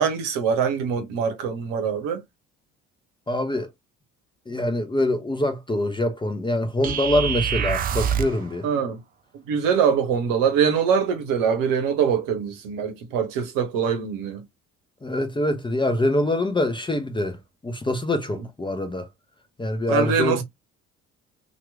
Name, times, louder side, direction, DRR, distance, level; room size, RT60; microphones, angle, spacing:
voice 1, 0.0-2.2 8.6-9.0 9.3-14.4 19.9-20.4, right 7 dB, 55° right, 1.0 m, -23 dB
voice 2, 3.3-3.7 4.5-8.7 15.0-17.4 17.6-19.1 19.6-20.4, left 1 dB, 10° left, 0.8 m, -24 dB
sound 1, 6.8-8.4, right 8 dB, 25° right, 0.3 m, -25 dB
2.9 x 2.5 x 3.4 m
figure-of-eight pair, 50°, 41 cm